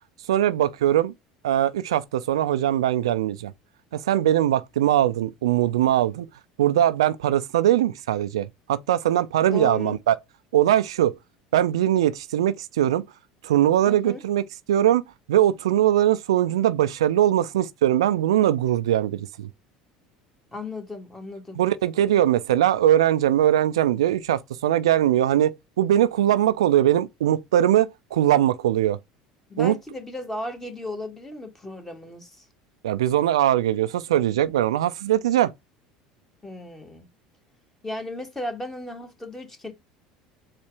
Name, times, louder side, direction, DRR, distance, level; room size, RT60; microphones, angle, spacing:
voice 1, 0.3-1.1 1.4-3.5 3.9-6.3 6.6-10.2 10.5-11.1 11.5-13.0 13.4-14.4 14.7-15.0 15.3-19.5 21.6-29.0 29.6-29.7 32.8-35.5, right 12 dB, 85° right, 0.3 m, -21 dB
voice 2, 9.4-10.0 13.9-14.2 20.5-21.6 29.5-32.5 36.4-37.1 37.8-39.7, left 2 dB, 15° left, 1.7 m, -35 dB
4.3 x 2.4 x 4.7 m
hypercardioid pair, 80°, 3 cm